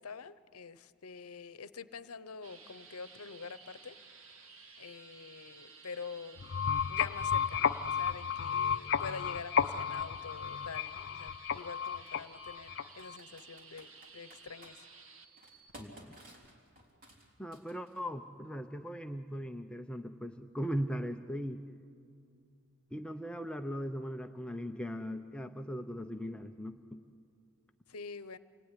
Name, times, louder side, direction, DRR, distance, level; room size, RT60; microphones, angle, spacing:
voice 1, 0.0-3.9 4.8-6.4 6.9-13.9 14.1-14.9 27.9-28.4, left 5 dB, 75° left, 15 dB, 0.9 m, -46 dB
sound 1, 2.4-15.9 16.4-16.5, right 4 dB, 65° right, 2.0 m, -55 dB
sound 2, 6.4-13.2, left 7 dB, 50° left, 0.6 m, -33 dB
Computer keyboard, 10.2-10.3 11.8-12.1 13.0-14.8 15.4-18.1, right 1 dB, 40° right, 3.6 m, -55 dB
voice 2, 15.8-16.1 17.4-21.6 22.9-27.0, equal, 5° left, 5 dB, 0.6 m, -39 dB
28.0 x 20.0 x 9.9 m, 2.4 s
head